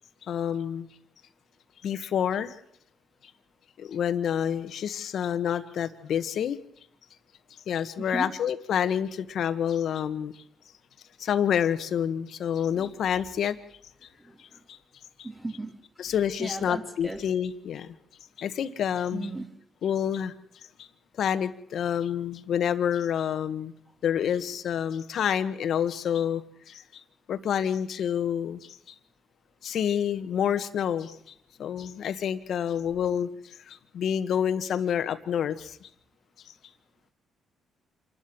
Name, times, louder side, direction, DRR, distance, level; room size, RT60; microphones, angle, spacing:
voice 1, 0.2-0.9 1.8-2.5 3.8-6.6 7.7-10.3 11.2-13.6 14.7-14.8 15.2-15.3 16.0-17.9 18.4-19.3 19.8-20.3 20.8-20.9 21.2-23.7 24.0-26.4 26.7-27.0 27.3-28.8 29.6-31.3 31.6-35.9, left 9 dB, 65° left, 10 dB, 1.6 m, -28 dB
voice 2, 8.0-8.3 12.7-12.9 14.2-14.4 15.2-15.7 16.1-16.2 16.4-17.2 19.1-19.5, right 2 dB, 20° right, 0 dB, 2.6 m, -36 dB
27.0 x 12.5 x 8.9 m, 0.69 s
cardioid pair, 90°, 0 cm